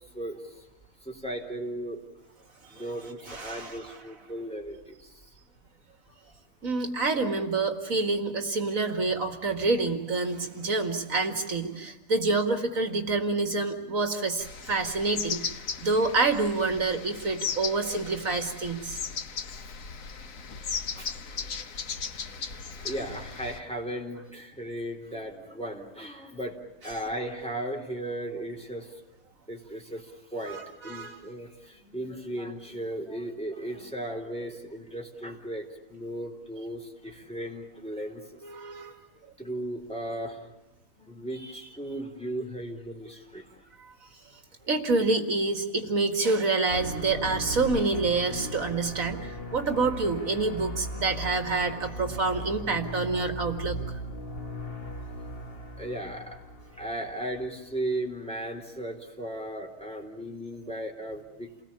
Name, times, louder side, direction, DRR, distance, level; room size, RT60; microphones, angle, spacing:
voice 1, 0.1-0.5 1.0-2.0 2.7-5.1 20.1-20.2 21.0-21.1 21.4-21.5 22.5-26.6 26.8-28.9 29.5-38.4 39.4-40.5 41.0-43.5 52.0-52.5 55.8-56.4 56.8-61.5, right 1 dB, 5° left, 1 dB, 3.8 m, -36 dB
voice 2, 3.3-4.0 6.6-19.0 20.7-20.8 21.5-21.6 22.3-22.4 22.8-22.9 30.5-31.2 38.4-39.0 41.4-41.5 43.8-43.9 44.7-54.0, right 3 dB, 75° right, 5 dB, 2.4 m, -28 dB
sound 1, 14.4-23.6, left 6 dB, 75° left, 1.5 m, -37 dB
sound 2, 46.7-57.9, left 1 dB, 45° left, 1.6 m, -38 dB
29.0 x 19.0 x 8.8 m, 1.1 s
omnidirectional pair, 1.4 m